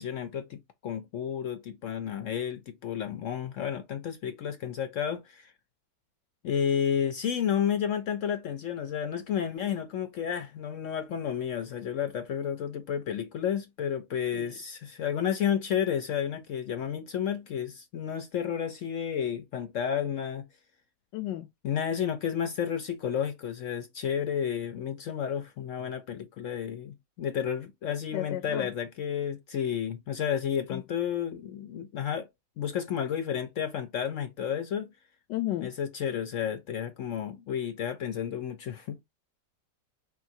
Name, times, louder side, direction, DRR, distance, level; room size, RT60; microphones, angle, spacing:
voice 1, 0.0-5.5 6.4-20.5 21.6-32.3 32.6-34.9 35.6-39.0, left 8 dB, 70° left, 0.7 m, -31 dB
voice 2, 21.1-21.5 28.1-28.7 30.7-30.8 35.3-35.7, left 14 dB, 85° left, 1.2 m, -33 dB
4.8 x 3.8 x 2.7 m
omnidirectional pair, 1.9 m